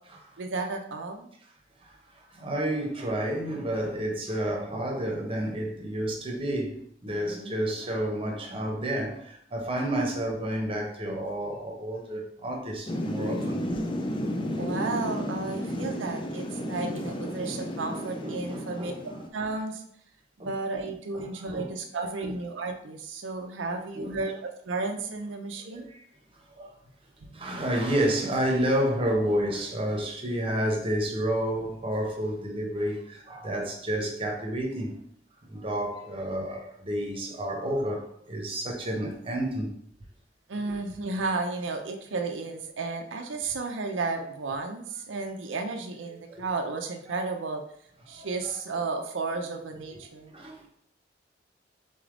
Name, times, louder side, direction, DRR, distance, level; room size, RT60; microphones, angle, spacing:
voice 1, 0.4-1.3 7.2-7.6 14.6-18.9 19.3-19.8 20.4-25.9 27.2-27.5 40.5-47.6 48.1-50.3, right 3 dB, 80° right, 0.6 m, -33 dB
voice 2, 1.8-13.8 14.1-14.7 16.0-16.1 16.6-17.3 17.9-19.2 20.4-20.5 21.1-21.7 22.2-22.3 23.9-24.2 25.6-26.0 26.3-26.7 27.3-35.0 35.5-39.7 46.3-46.4 47.1-47.2 48.1-48.5 50.3-50.7, right 1 dB, 30° right, 0.9 m, -31 dB
Thunder / Rain, 12.9-19.3, equal, 25° left, 0.4 m, -32 dB
3.9 x 3.4 x 3.7 m
head